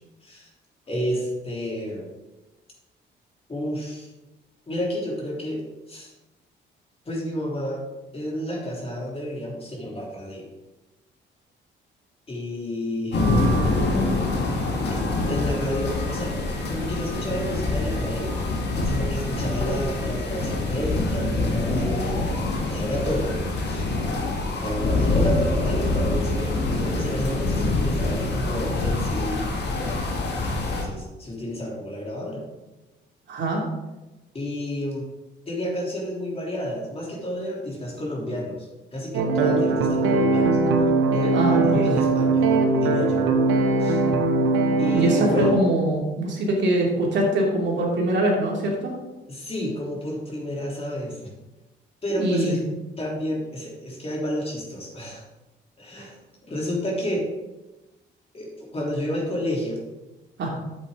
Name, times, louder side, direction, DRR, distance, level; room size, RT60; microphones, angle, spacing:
voice 1, 0.9-2.1 3.5-4.1 4.7-5.6 5.9-6.1 7.0-7.8 8.1-10.5 12.3-13.2 14.9-18.4 18.8-23.3 23.6-23.9 24.6-29.4 30.7-32.4 34.3-35.1 35.4-40.6 41.1-43.3 43.8-44.0 44.8-45.5 49.3-51.3 52.0-52.6 53.0-55.2 55.8-56.2 56.4-57.3 58.3-59.8, equal, 30° left, -2 dB, 3.2 m, -30 dB
sound 1, 13.1-30.8, left 2 dB, 60° left, 2.1 m, -25 dB
voice 2, 33.3-33.6 41.3-41.9 44.9-48.9 52.1-52.5 56.0-56.1 60.4-60.5, right 1 dB, 65° right, -2 dB, 2.6 m, -23 dB
sound 2, 39.1-45.5, right 3 dB, 90° right, 0.9 m, -20 dB
9.4 x 7.6 x 3.8 m, 1.1 s
cardioid pair, 90°, 20 cm